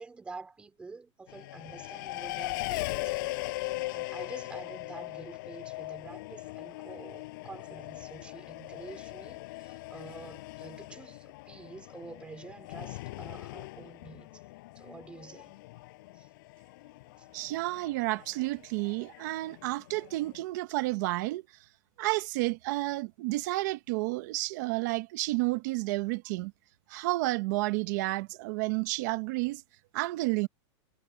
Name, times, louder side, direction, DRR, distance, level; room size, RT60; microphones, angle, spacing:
voice 1, 0.0-14.4 14.7-15.6 16.1-16.3 17.2-17.3, right 4 dB, 5° right, 4.7 m, -48 dB
Race car auto racing, 1.3-20.4, left 20 dB, 45° left, 6.1 m, -40 dB
voice 2, 17.3-21.4 22.0-26.5 26.9-29.6 29.9-30.5, right 21 dB, 40° right, 0.9 m, -31 dB
supercardioid pair, 170°, 15 cm